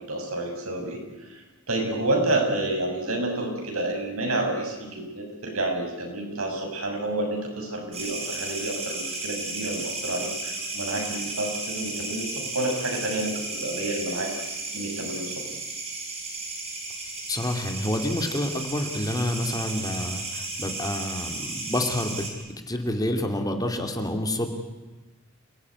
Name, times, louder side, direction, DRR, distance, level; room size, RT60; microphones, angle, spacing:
voice 1, 0.1-1.3 1.7-14.3 14.7-15.4, right 2 dB, 80° right, 2 dB, 6.8 m, -29 dB
sound 1, 7.9-22.3, right 3 dB, 30° right, 5.9 m, -34 dB
voice 2, 17.3-22.2 22.7-24.5, left 1 dB, 15° left, 5 dB, 2.5 m, -28 dB
28.5 x 18.0 x 9.7 m, 1.2 s
head